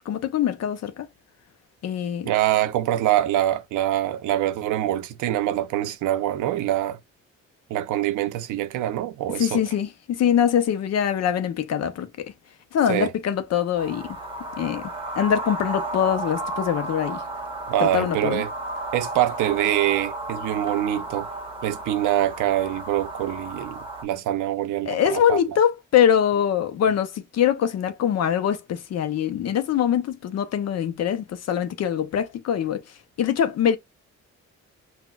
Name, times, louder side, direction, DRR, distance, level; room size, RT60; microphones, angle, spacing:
voice 1, 0.1-1.1 1.8-2.3 9.4-12.1 12.7-14.2 14.6-14.8 15.2-17.2 17.8-18.4 24.9-33.8, left 9 dB, 60° left, 0.5 m, -23 dB
voice 2, 2.2-7.0 7.7-9.6 12.9-13.1 17.7-18.5 18.9-21.3 21.6-25.4, right 13 dB, 85° right, 0.5 m, -24 dB
sound 1, 13.8-24.0, right 2 dB, 15° right, 1.1 m, -33 dB
4.1 x 2.1 x 2.2 m
cardioid pair, 90°, 30 cm